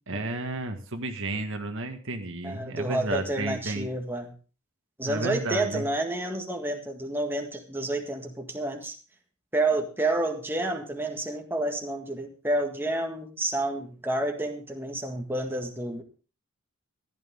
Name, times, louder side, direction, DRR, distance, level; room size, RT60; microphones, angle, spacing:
voice 1, 0.1-3.9 5.0-5.8, right 2 dB, 60° right, 1.7 m, -32 dB
voice 2, 2.4-4.3 5.0-9.0 9.5-16.0, right 2 dB, 10° right, 1.8 m, -29 dB
15.0 x 12.0 x 3.6 m
head